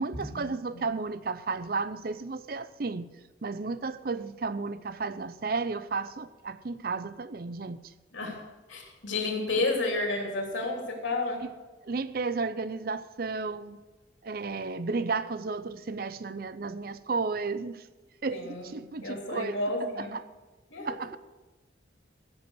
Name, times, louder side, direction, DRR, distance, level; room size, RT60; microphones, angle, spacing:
voice 1, 0.0-3.1 3.4-7.8 11.4-11.5 11.8-13.8 14.2-17.8 18.2-19.6 20.0-20.2 20.8-21.2, right 4 dB, 50° right, 0.5 m, -33 dB
voice 2, 8.7-11.4 18.3-18.7 19.0-20.1 20.7-20.9, left 2 dB, 85° left, 3.0 m, -31 dB
16.0 x 7.8 x 6.3 m
head